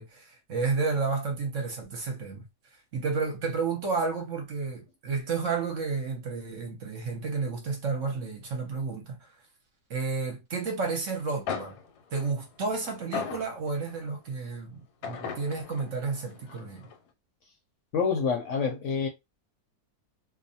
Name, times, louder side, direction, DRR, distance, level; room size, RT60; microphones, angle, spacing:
voice 1, 0.0-2.5 2.7-9.3 9.9-11.8 12.1-16.9, right 4 dB, 60° right, 0.9 m, -31 dB
sound 1, 11.2-11.3 11.5-14.1 15.0-17.0, left 6 dB, 85° left, 1.1 m, -38 dB
voice 2, 17.9-19.1, left 5 dB, 65° left, 0.8 m, -27 dB
2.6 x 2.1 x 2.7 m
omnidirectional pair, 1.7 m